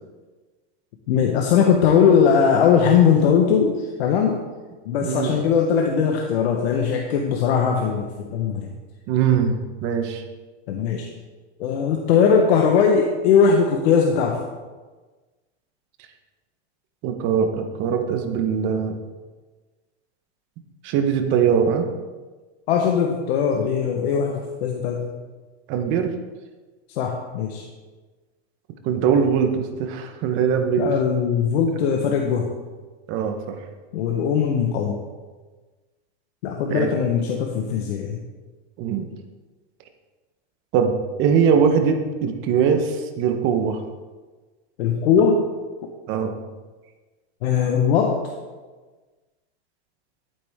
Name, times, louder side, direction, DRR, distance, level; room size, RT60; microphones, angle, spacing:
voice 1, 1.1-4.4 4.9-8.7 10.7-11.1 11.6-14.4 22.7-25.1 26.9-27.6 30.8-32.5 33.9-35.0 36.4-38.2 44.8-45.4 47.4-48.2, left 6 dB, 65° left, 2 dB, 1.3 m, -20 dB
voice 2, 5.0-5.4 9.1-10.2 17.0-19.0 20.8-21.9 25.7-26.1 28.8-30.9 33.1-33.6 36.7-36.9 38.8-39.1 40.7-43.8 46.1-46.4, right 7 dB, 35° right, 6 dB, 1.1 m, -21 dB
11.5 x 8.9 x 3.6 m, 1.3 s
supercardioid pair, 155°, 34 cm